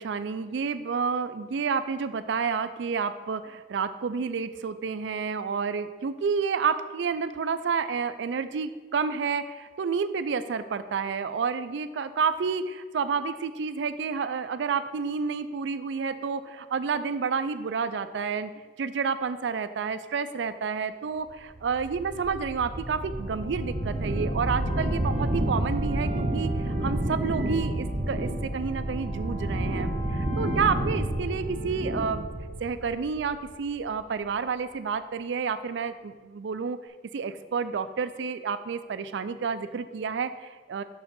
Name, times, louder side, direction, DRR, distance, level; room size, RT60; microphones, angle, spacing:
voice 1, 0.0-18.5 18.8-32.3 32.6-36.8 37.1-40.8, right 5 dB, 75° right, 12 dB, 0.4 m, -30 dB
sound 1, 21.6-33.6, right 1 dB, 45° right, 0.8 m, -30 dB
6.2 x 4.8 x 5.3 m, 1.3 s
head